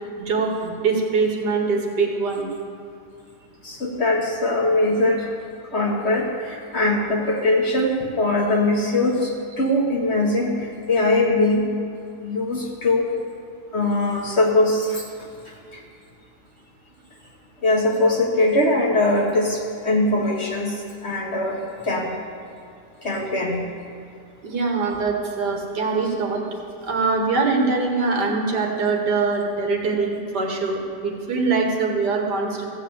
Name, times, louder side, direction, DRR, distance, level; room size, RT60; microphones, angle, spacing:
voice 1, 0.2-2.5 24.4-26.4 26.8-32.6, right 4 dB, 70° right, 1 dB, 1.9 m, -23 dB
voice 2, 3.6-5.3 5.7-11.7 12.2-13.1 13.7-15.8 17.6-22.1 23.0-23.7, left 2 dB, 45° left, -1 dB, 1.2 m, -22 dB
14.5 x 4.9 x 8.4 m, 2.4 s
omnidirectional pair, 1.9 m